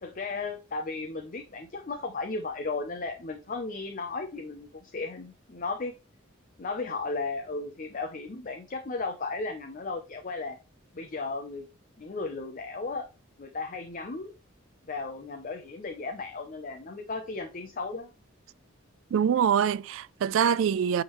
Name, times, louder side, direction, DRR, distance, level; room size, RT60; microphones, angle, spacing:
voice 1, 0.0-5.9 6.6-10.6 10.9-11.6 12.0-13.1 13.4-14.3 14.9-18.1, left 3 dB, 40° left, 0.6 m, -35 dB
voice 2, 19.1-21.0, right 8 dB, 70° right, 0.3 m, -24 dB
9.2 x 3.7 x 3.1 m
head